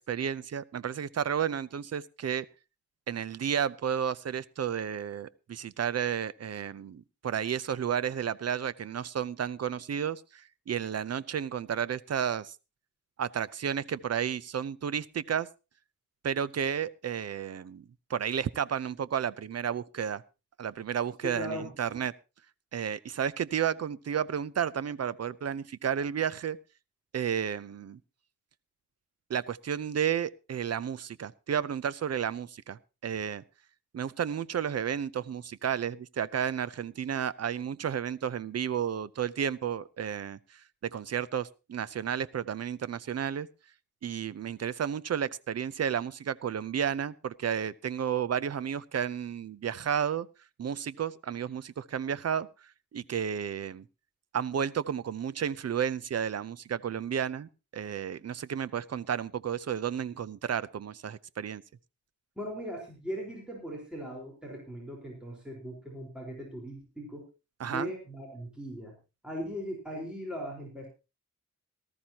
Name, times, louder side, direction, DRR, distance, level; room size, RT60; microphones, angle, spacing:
voice 1, 0.0-2.5 3.1-12.5 13.2-15.5 16.2-17.8 18.1-20.2 20.6-22.1 22.7-26.6 27.1-28.0 29.3-33.4 33.9-43.5 44.0-50.3 50.6-52.5 52.9-53.8 54.3-61.6 67.6-67.9, right 8 dB, 55° right, 16 dB, 0.6 m, -32 dB
voice 2, 21.2-21.7 62.4-67.2 67.6-68.9 69.2-70.9, equal, 5° right, -2 dB, 4.3 m, -39 dB
18.5 x 13.5 x 2.9 m, 0.29 s
wide cardioid pair, 145°, 30 cm